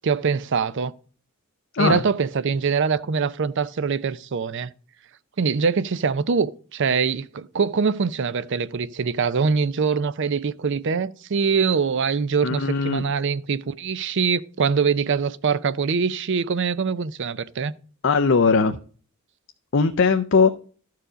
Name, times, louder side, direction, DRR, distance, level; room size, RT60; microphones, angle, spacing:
voice 1, 0.0-0.9 1.8-4.7 5.4-17.7, right 5 dB, 55° right, 0.5 m, -23 dB
voice 2, 12.4-13.0 18.0-18.8 19.7-20.5, left 4 dB, 60° left, 0.5 m, -19 dB
12.5 x 4.7 x 5.0 m
head